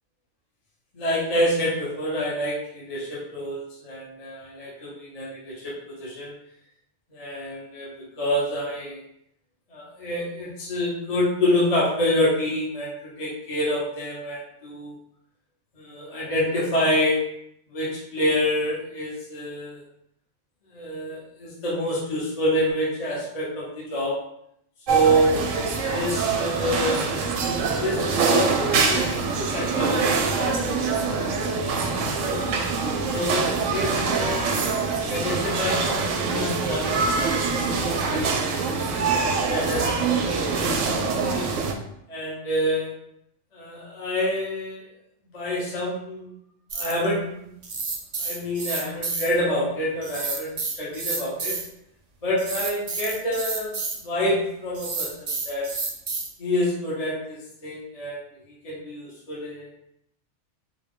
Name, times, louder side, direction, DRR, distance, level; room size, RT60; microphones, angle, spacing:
voice 1, 0.9-6.3 7.1-9.0 9.7-14.9 15.7-17.2 17.7-19.8 20.7-24.2 24.9-25.3 25.9-27.3 27.8-32.4 33.1-34.6 35.1-38.7 39.5-41.5 42.1-42.9 43.5-44.9 45.3-46.3 46.7-47.5 48.2-51.6 52.2-55.6 56.4-58.2 58.6-59.7, equal, 35° left, -6 dB, 1.0 m, -27 dB
sound 1, 24.9-41.7, right 4 dB, 85° right, 0.9 m, -24 dB
sound 2, 46.7-47.1 47.6-49.3 50.0-51.7 52.4-54.0 54.8-56.3, right 4 dB, 50° right, 0.5 m, -30 dB
3.9 x 2.3 x 3.6 m, 0.75 s
omnidirectional pair, 1.3 m